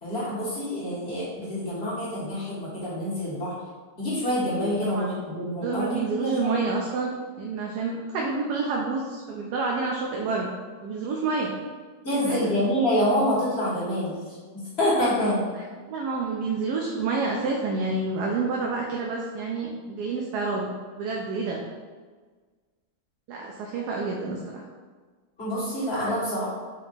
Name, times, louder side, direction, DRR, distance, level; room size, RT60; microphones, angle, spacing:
voice 1, 0.0-3.5 4.0-6.6 12.0-14.2 14.5-15.5 25.4-26.5, equal, 40° left, -9 dB, 1.8 m, -26 dB
voice 2, 5.6-10.5 10.8-11.6 12.1-12.5 15.5-15.6 15.9-20.7 21.0-21.6 23.3-24.6, right 4 dB, 85° right, -1 dB, 1.2 m, -29 dB
4.4 x 2.9 x 4.2 m, 1.4 s
omnidirectional pair, 1.7 m